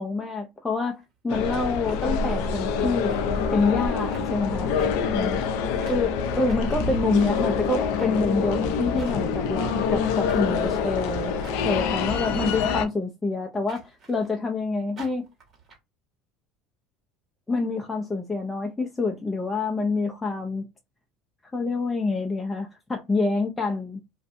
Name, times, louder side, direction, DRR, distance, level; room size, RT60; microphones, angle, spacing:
voice 1, 0.0-3.1 3.5-4.8 5.1-5.5 5.8-11.4 11.6-15.3 17.5-20.6 21.5-24.0, left 3 dB, 15° left, 0.5 m, -27 dB
sound 1, 0.9-1.0 1.9-2.7 3.1-3.2 3.5-3.9 4.1-4.3 4.8-4.9 5.8-6.0 6.5-7.4 7.9-8.2 8.9-9.4 10.3-10.6 11.4-11.8 12.5-12.8 13.7-14.3 15.0-15.8, right 3 dB, 40° right, 1.3 m, -47 dB
sound 2, 1.3-12.8, left 5 dB, 70° left, 0.4 m, -26 dB
2.6 x 2.2 x 2.5 m
supercardioid pair, 90°, 0 cm